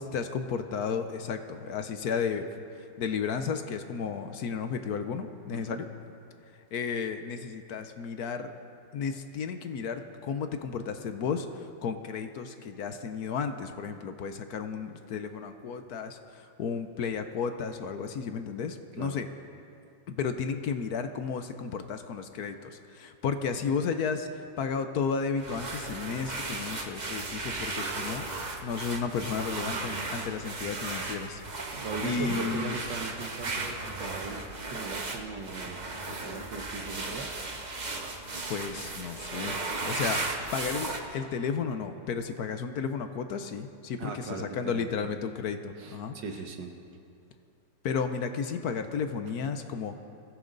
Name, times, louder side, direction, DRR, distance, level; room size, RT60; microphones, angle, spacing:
voice 1, 0.0-2.5 2.7-5.9 6.7-8.5 8.9-19.3 20.1-28.2 28.6-32.8 38.5-39.6 39.8-46.2 47.8-50.0, left 6 dB, 60° left, 8 dB, 1.1 m, -33 dB
sound 1, 25.4-41.0, right 3 dB, 30° right, 0.9 m, -35 dB
voice 2, 31.7-35.8 36.1-37.3 44.0-44.9 45.8-46.7, right 4 dB, 65° right, 4 dB, 1.9 m, -39 dB
22.0 x 15.0 x 4.0 m, 2.5 s
omnidirectional pair, 2.1 m